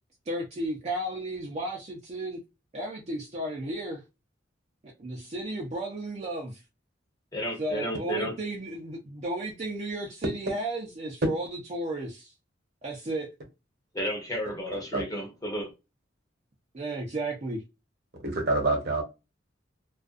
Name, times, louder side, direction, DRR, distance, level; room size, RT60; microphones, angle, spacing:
voice 1, 0.3-2.4 2.7-4.0 4.8-6.6 7.6-12.3 12.8-13.3 16.7-17.6, right 1 dB, 35° right, 0.5 m, -34 dB
voice 2, 7.3-8.3 13.9-15.7, equal, 20° left, 0.8 m, -32 dB
voice 3, 14.7-15.0 18.2-19.0, right 2 dB, 55° right, 0.9 m, -27 dB
2.4 x 2.2 x 2.4 m
head